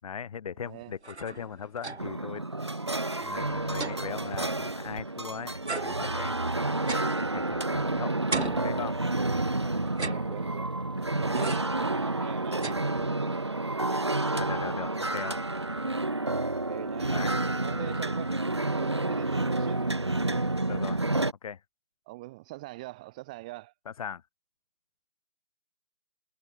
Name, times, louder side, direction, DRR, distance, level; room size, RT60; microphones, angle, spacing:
voice 1, 0.0-2.5 3.2-5.6 5.8-6.3 7.3-8.2 8.6-9.0 14.3-15.4 17.0-17.3 17.7-17.9 20.7-21.0 21.4-21.6 23.9-24.2, left 7 dB, 30° left, 4.5 m, -39 dB
voice 2, 0.6-0.9 9.6-10.7 11.2-14.2 16.1-17.2 17.6-18.3 18.7-19.9 20.2-20.5 22.1-23.7, right 20 dB, 5° right, 1.1 m, -43 dB
sound 1, 0.8-2.3 2.6-2.7 3.0-5.2 5.7-7.9 8.3-9.4 9.9-10.8 11.3-11.9 12.2-13.4, right 3 dB, 70° right, 4.4 m, -38 dB
sound 2, 2.0-21.3, right 2 dB, 25° right, 0.6 m, -30 dB
figure-of-eight pair, 165°, 34 cm